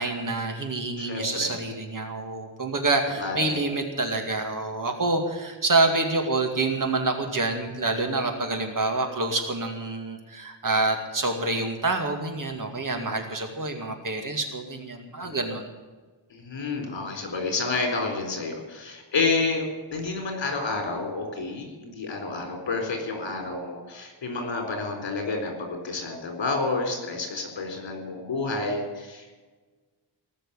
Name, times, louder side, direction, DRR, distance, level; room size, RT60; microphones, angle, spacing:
voice 1, 0.0-15.7, right 3 dB, 45° right, 4 dB, 2.3 m, -27 dB
voice 2, 1.0-1.5 3.2-3.6 12.9-13.2 15.2-15.4 16.3-19.6 19.9-29.4, left 3 dB, 75° left, 3 dB, 4.2 m, -30 dB
19.0 x 6.5 x 9.9 m, 1.3 s
wide cardioid pair, 160°, 45 cm